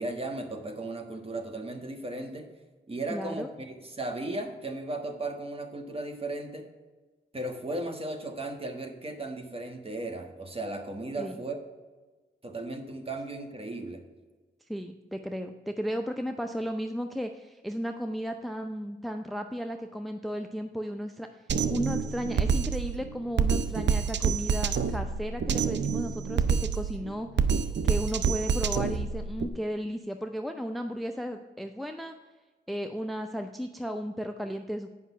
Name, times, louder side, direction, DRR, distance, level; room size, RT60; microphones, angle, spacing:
voice 1, 0.0-2.5 2.9-6.7 7.3-11.6 12.4-14.0, right 2 dB, 30° right, 4 dB, 1.5 m, -36 dB
voice 2, 3.1-3.5 11.2-11.4 14.7-21.3 21.7-27.3 27.8-32.2 32.7-34.9, equal, ahead, 6 dB, 0.5 m, -34 dB
Drum kit, 21.5-29.5, right 6 dB, 70° right, 0.6 m, -27 dB
8.2 x 5.6 x 5.6 m, 1.3 s
cardioid pair, 70°, 19 cm